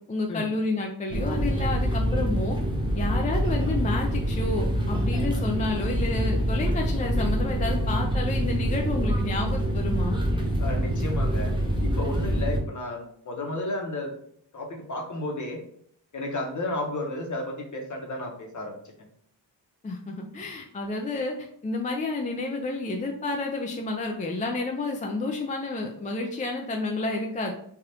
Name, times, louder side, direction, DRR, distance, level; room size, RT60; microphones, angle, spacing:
voice 1, 0.1-2.6 3.0-10.2 19.8-27.5, left 2 dB, 20° left, 1 dB, 0.3 m, -30 dB
sound 1, 1.1-12.6, equal, 10° right, 0.7 m, -26 dB
voice 2, 10.6-11.5 11.8-14.1 14.5-15.6 16.1-18.8, left 1 dB, 45° left, 1 dB, 0.9 m, -32 dB
3.4 x 2.4 x 2.8 m, 0.65 s
wide cardioid pair, 90°, 43 cm